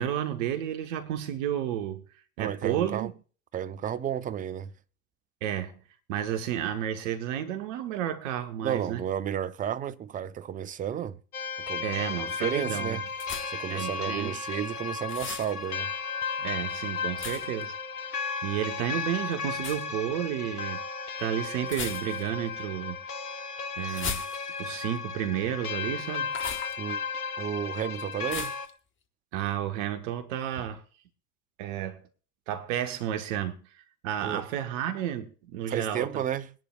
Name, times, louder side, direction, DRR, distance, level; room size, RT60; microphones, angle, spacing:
voice 1, 0.0-2.0 2.4-3.1 5.4-5.8 6.1-9.0 11.8-13.0 13.7-14.4 16.4-17.8 18.0-18.1 18.4-20.8 21.2-23.0 23.8-24.2 24.6-26.3 29.3-30.8 31.6-32.0 32.5-36.2, right 10 dB, 50° right, 1.2 m, -32 dB
voice 2, 2.4-3.1 3.5-4.7 8.6-11.2 11.7-13.0 13.5-15.9 26.8-27.0 27.4-28.5 34.2-34.4 35.7-36.5, right 9 dB, 20° right, 0.6 m, -32 dB
sound 1, 11.3-28.7, left 5 dB, 70° left, 1.2 m, -34 dB
sound 2, 13.2-13.7 15.1-15.5 17.2-17.6 19.6-19.8 21.6-22.4 23.9-24.7 26.3-26.8 28.3-28.7, left 6 dB, 25° left, 1.3 m, -37 dB
21.5 x 11.0 x 2.4 m
figure-of-eight pair, 80°, 46 cm